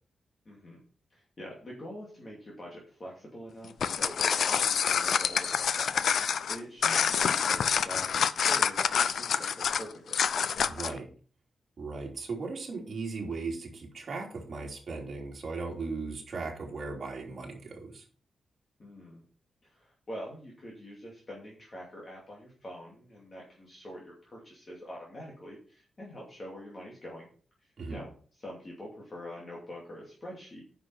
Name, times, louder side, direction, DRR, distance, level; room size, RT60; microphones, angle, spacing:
voice 1, 0.4-0.8 1.1-5.9 6.2-10.2 18.8-19.2 19.6-27.3 27.6-28.1 28.4-30.6, equal, 25° left, -3 dB, 2.6 m, -45 dB
sound 1, 3.6-11.0, left 7 dB, 65° left, 0.5 m, -27 dB
voice 2, 10.7-11.1 11.8-18.0 27.8-28.0, right 4 dB, 40° right, -1 dB, 3.2 m, -37 dB
9.7 x 6.0 x 5.8 m, 0.42 s
wide cardioid pair, 175°, 0 cm